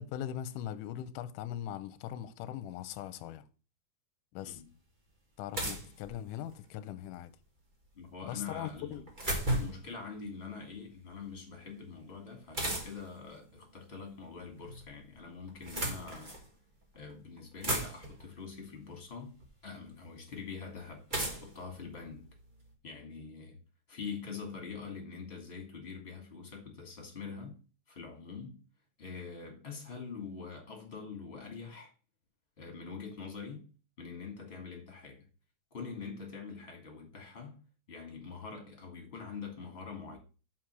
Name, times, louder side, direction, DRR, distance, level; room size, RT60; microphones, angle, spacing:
voice 1, 0.0-3.4 4.3-4.6 5.4-7.3 8.2-9.1, left 11 dB, 85° left, 2.1 m, -40 dB
sound 1, 4.5-4.6 5.5-6.7 8.7-9.9 12.5-13.2 14.3-14.9 15.5-16.5 17.1-17.2 17.4-18.3 19.4-19.5 21.1-22.6, right 1 dB, 25° right, 0.9 m, -35 dB
voice 2, 7.9-9.0 9.5-16.3 16.9-19.4 19.6-22.2 22.8-23.6 23.9-27.6 27.9-28.6 29.0-31.9 32.6-33.7 34.0-35.2 35.7-37.6 37.9-40.2, left 5 dB, 20° left, 2.2 m, -44 dB
5.9 x 5.1 x 6.1 m
omnidirectional pair, 3.8 m